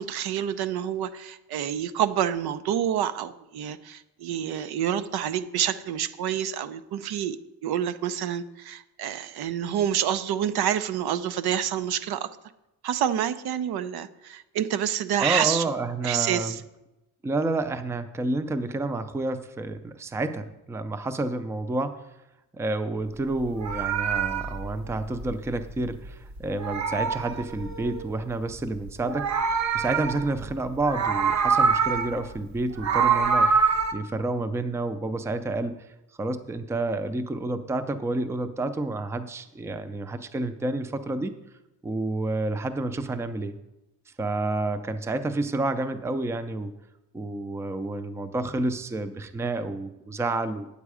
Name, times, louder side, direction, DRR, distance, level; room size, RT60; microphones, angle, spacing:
voice 1, 0.0-7.4 7.6-12.3 12.8-15.6 16.0-16.6, right 10 dB, 85° right, 13 dB, 0.7 m, -28 dB
voice 2, 15.2-16.6 17.2-22.1 22.5-35.9 36.2-41.3 41.8-43.5 44.2-46.7 47.1-50.7, right 2 dB, 10° right, 10 dB, 0.4 m, -29 dB
Meow, 23.4-26.1 26.4-28.1 28.9-30.5 30.8-32.2 32.6-33.9, right 5 dB, 50° right, 0.7 m, -25 dB
9.0 x 8.3 x 4.8 m, 0.94 s
wide cardioid pair, 165°, 37 cm